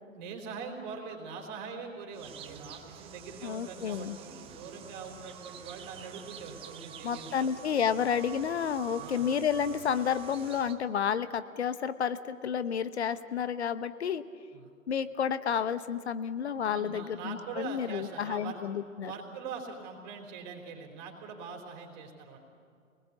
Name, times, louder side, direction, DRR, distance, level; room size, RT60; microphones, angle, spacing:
voice 1, 0.1-7.5 8.9-9.3 14.5-14.7 16.7-18.6 19.0-22.4, right 5 dB, 35° right, 2 dB, 4.0 m, -43 dB
sound 1, 2.1-10.8, right 9 dB, 15° right, 1.0 m, -47 dB
voice 2, 3.4-4.2 7.0-14.2 14.9-19.1, left 7 dB, 55° left, 13 dB, 1.1 m, -31 dB
27.5 x 20.0 x 8.3 m, 2.3 s
figure-of-eight pair, 120°, 40 cm